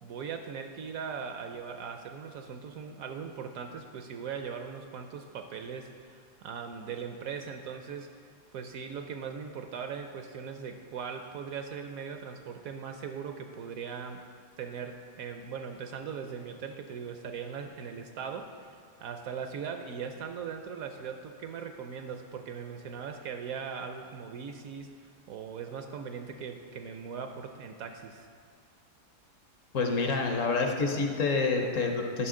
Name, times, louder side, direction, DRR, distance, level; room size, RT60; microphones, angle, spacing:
voice 1, 0.0-8.1 8.5-14.3 14.6-28.3, right 6 dB, 70° right, 5 dB, 0.9 m, -39 dB
voice 2, 29.7-32.3, left 4 dB, 60° left, 3 dB, 1.0 m, -28 dB
11.0 x 5.9 x 3.7 m, 2.3 s
omnidirectional pair, 1.7 m